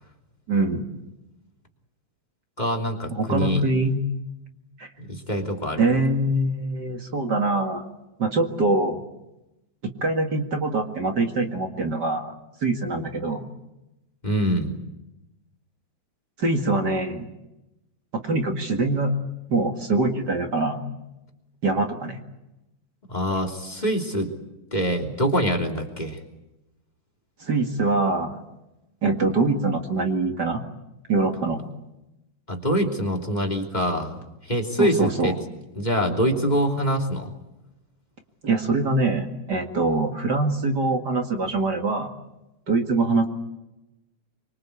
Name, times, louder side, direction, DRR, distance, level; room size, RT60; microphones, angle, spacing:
voice 1, 0.5-0.8 3.1-4.0 4.8-4.9 5.8-7.8 8.2-9.0 10.0-12.3 12.6-13.5 16.4-17.3 18.2-19.1 19.5-20.8 21.6-22.2 27.4-28.4 29.0-30.6 31.1-31.6 34.8-35.3 38.4-42.1 42.7-43.3, right 2 dB, 35° right, 4 dB, 2.2 m, -23 dB
voice 2, 2.6-3.6 5.1-5.8 14.2-14.8 23.1-24.3 24.7-26.2 32.5-34.2 34.4-35.4 35.8-37.3, equal, 15° left, 5 dB, 2.9 m, -24 dB
25.0 x 24.5 x 8.4 m, 0.94 s
omnidirectional pair, 3.5 m